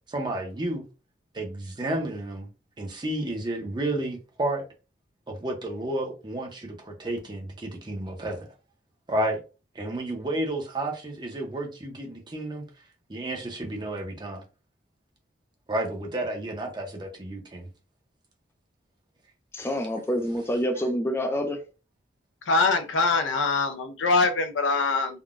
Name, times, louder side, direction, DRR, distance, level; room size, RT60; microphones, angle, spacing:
voice 1, 0.1-0.8 1.3-2.5 2.8-4.6 5.3-8.5 9.1-9.4 9.7-12.7 13.1-14.4 15.7-17.7, right 1 dB, 25° right, 0.6 m, -31 dB
voice 2, 19.5-21.6, equal, 15° left, 0.4 m, -27 dB
voice 3, 22.5-25.2, left 3 dB, 85° left, 0.5 m, -23 dB
3.6 x 2.2 x 2.4 m
head